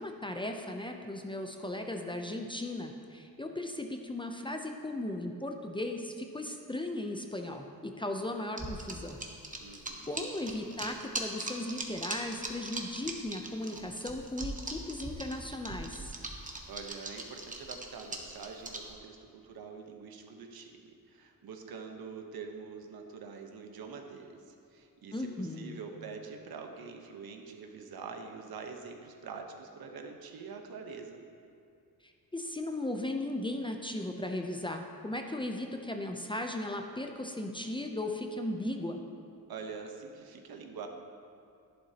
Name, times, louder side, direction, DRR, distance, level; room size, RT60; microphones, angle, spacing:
voice 1, 0.0-9.2 10.1-16.1 25.1-25.8 32.3-39.0, left 1 dB, 15° left, 3 dB, 0.5 m, -37 dB
sound 1, 8.6-18.9, right 2 dB, 20° right, 0.9 m, -39 dB
voice 2, 9.6-10.2 16.7-31.2 39.5-40.9, right 5 dB, 70° right, 4 dB, 1.1 m, -45 dB
11.5 x 11.0 x 2.9 m, 2.4 s
wide cardioid pair, 130°, 37 cm